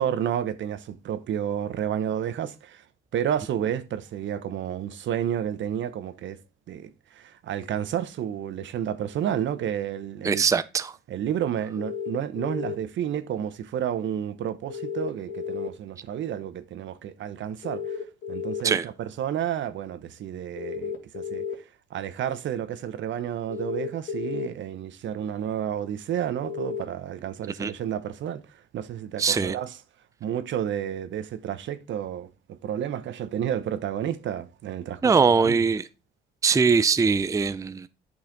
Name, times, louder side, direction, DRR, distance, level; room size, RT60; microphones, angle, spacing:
voice 1, 0.0-2.8 3.1-6.4 6.7-10.4 11.1-21.4 21.9-29.7 30.2-35.6, right 9 dB, 70° right, 0.9 m, -31 dB
voice 2, 10.2-10.9 18.6-18.8 27.6-27.7 29.2-29.6 35.0-35.8 36.4-37.9, right 5 dB, 15° right, 0.4 m, -21 dB
sound 1, 11.8-12.7 14.7-15.7 17.6-18.6 20.6-21.5 23.5-24.5 26.4-26.8, left 6 dB, 75° left, 2.3 m, -32 dB
8.9 x 5.6 x 3.9 m
cardioid pair, 90°, 20 cm